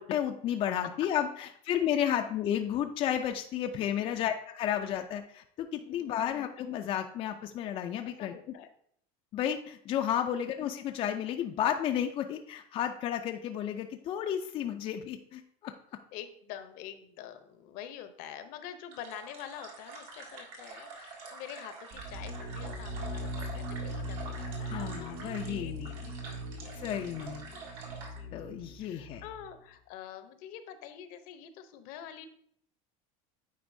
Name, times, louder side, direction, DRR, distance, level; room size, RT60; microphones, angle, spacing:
voice 1, 0.0-8.3 9.3-15.7 24.7-25.9 26.8-27.4 28.3-29.2, left 10 dB, 35° left, 5 dB, 0.4 m, -32 dB
voice 2, 5.8-6.3 8.2-8.7 16.1-32.3, left 10 dB, 60° left, 10 dB, 0.7 m, -47 dB
sound 1, 18.9-28.2, right 3 dB, 70° right, 1.8 m, -47 dB
sound 2, 21.9-29.6, right 1 dB, 45° right, 0.7 m, -40 dB
9.4 x 4.3 x 2.6 m, 0.66 s
supercardioid pair, 135°, 16 cm